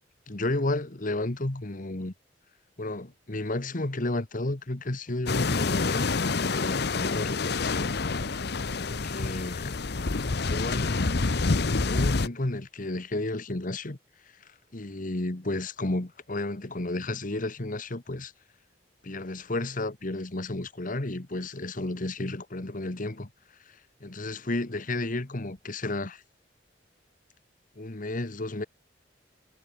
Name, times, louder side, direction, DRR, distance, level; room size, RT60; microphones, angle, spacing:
voice 1, 0.3-2.1 2.8-7.9 8.8-9.8 10.4-11.0 11.9-14.0 14.4-18.3 19.0-23.3 23.7-26.2 27.8-28.6, left 2 dB, 45° left, 1.5 m, -32 dB
sound 1, 5.3-12.3, left 3 dB, 60° left, 0.9 m, -27 dB
head